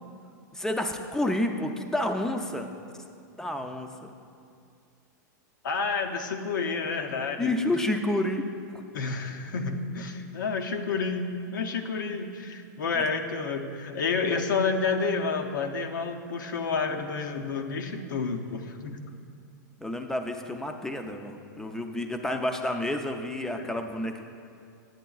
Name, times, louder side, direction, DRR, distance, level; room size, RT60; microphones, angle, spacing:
voice 1, 0.5-2.7 3.4-4.1 7.4-8.5 8.7-8.8 12.9-13.0 19.8-24.3, left 1 dB, 5° left, 5 dB, 0.4 m, -30 dB
voice 2, 5.6-7.5 8.9-19.0 23.5-23.7, left 4 dB, 90° left, 5 dB, 0.6 m, -30 dB
9.0 x 8.1 x 2.3 m, 2.3 s
hypercardioid pair, 130°, 10 cm